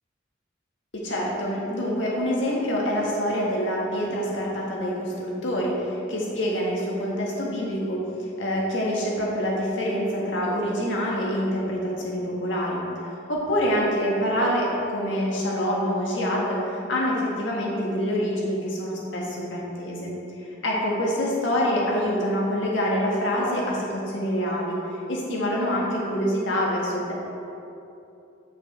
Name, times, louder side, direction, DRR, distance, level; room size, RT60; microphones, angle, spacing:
voice 1, 0.9-20.1 20.6-24.8 25.1-27.1, equal, 75° left, -4 dB, 1.6 m, -26 dB
8.2 x 6.4 x 3.3 m, 2.7 s
head